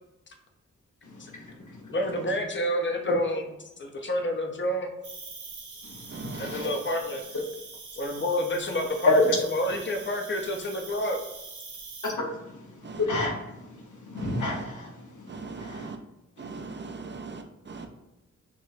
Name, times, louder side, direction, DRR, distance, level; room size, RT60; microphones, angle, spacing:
voice 1, 1.0-2.0 5.8-6.8 9.1-9.2 12.0-15.9 16.4-16.7 17.8-17.9, left 2 dB, 85° left, -1 dB, 1.0 m, -32 dB
voice 2, 1.9-3.4 3.8-4.9 6.4-7.2 7.9-9.2 9.5-11.2, equal, 40° left, 3 dB, 0.7 m, -29 dB
Cricket, 5.0-12.1, right 4 dB, 80° right, 0.9 m, -44 dB
voice 3, 6.1-6.7 12.8-13.1 14.1-14.7 15.3-16.0 16.4-17.9, right 4 dB, 40° right, 6 dB, 0.4 m, -40 dB
6.0 x 2.1 x 2.7 m, 0.96 s
wide cardioid pair, 75°, 29 cm